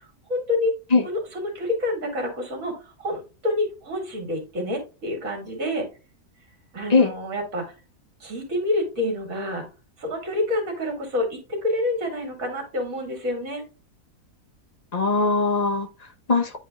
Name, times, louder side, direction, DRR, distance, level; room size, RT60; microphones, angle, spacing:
voice 1, 0.3-0.7 1.0-2.7 3.0-5.9 6.7-7.6 8.2-9.7 10.0-13.6, left 2 dB, 65° right, 2.6 m, -27 dB
voice 2, 14.9-16.6, left 3 dB, 35° left, 0.8 m, -21 dB
9.5 x 4.3 x 2.3 m
omnidirectional pair, 1.6 m